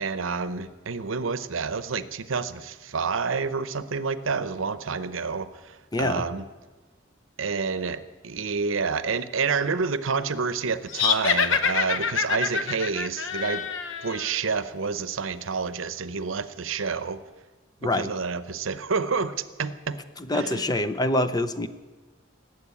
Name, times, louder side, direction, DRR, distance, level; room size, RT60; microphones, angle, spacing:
voice 1, 0.0-6.4 7.4-13.7 14.0-17.2 17.8-20.0 20.3-20.6, right 5 dB, 85° right, 13 dB, 0.7 m, -29 dB
voice 2, 5.9-6.2 17.8-18.1 20.3-21.7, left 1 dB, 20° left, 11 dB, 0.5 m, -25 dB
sound 1, 10.9-14.3, left 6 dB, 70° left, 0.8 m, -26 dB
19.0 x 8.0 x 8.3 m, 1.3 s
head